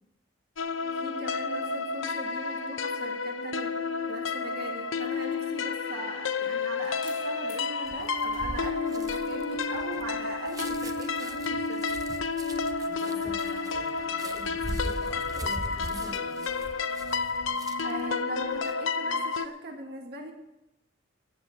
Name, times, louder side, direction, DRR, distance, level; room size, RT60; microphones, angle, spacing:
sound 1, 0.6-19.5, left 4 dB, 80° left, 0.7 m, -31 dB
voice 1, 0.6-3.8 4.0-12.0 17.8-20.3, right 2 dB, 50° right, 2 dB, 1.7 m, -40 dB
sound 2, 6.1-17.8, left 4 dB, 45° left, 5.1 m, -59 dB
sound 3, 7.9-18.0 18.4-18.7, right 2 dB, 20° right, 0.6 m, -40 dB
voice 2, 12.8-16.5, equal, 20° left, -4 dB, 4.2 m, -45 dB
14.5 x 7.8 x 7.4 m, 0.91 s
head